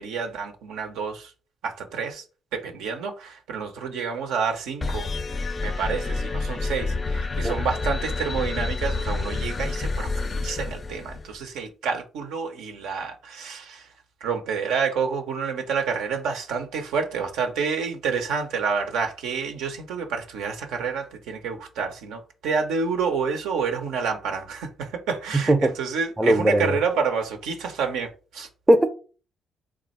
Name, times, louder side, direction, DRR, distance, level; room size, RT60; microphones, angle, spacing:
voice 1, 0.0-1.3 1.6-2.2 2.5-13.9 14.2-28.5, right 5 dB, 75° right, 0.5 m, -29 dB
sound 1, 4.8-11.4, left 3 dB, 35° left, 0.4 m, -28 dB
voice 2, 26.2-26.8 28.7-28.9, right 1 dB, 15° right, 0.6 m, -18 dB
3.2 x 2.4 x 4.1 m
hypercardioid pair, 50°, 0 cm